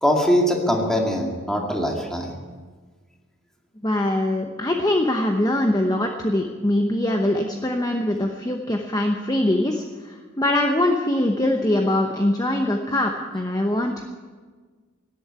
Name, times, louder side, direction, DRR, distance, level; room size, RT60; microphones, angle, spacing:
voice 1, 0.0-2.3, equal, 5° left, 0 dB, 2.2 m, -22 dB
voice 2, 3.8-14.0, left 1 dB, 20° left, 3 dB, 0.9 m, -22 dB
18.0 x 8.5 x 9.5 m, 1.4 s
head